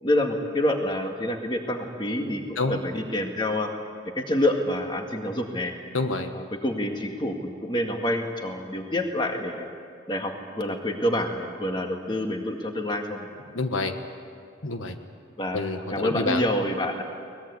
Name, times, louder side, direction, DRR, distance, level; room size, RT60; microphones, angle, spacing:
voice 1, 0.0-3.7 4.2-5.7 6.3-9.7 10.1-13.3 15.4-15.6 15.9-17.0, left 1 dB, 25° left, 3 dB, 1.9 m, -27 dB
voice 2, 5.9-6.3 13.5-13.9 14.6-15.0 15.5-16.4, left 3 dB, 85° left, 7 dB, 1.4 m, -27 dB
23.0 x 20.0 x 8.5 m, 2.3 s
head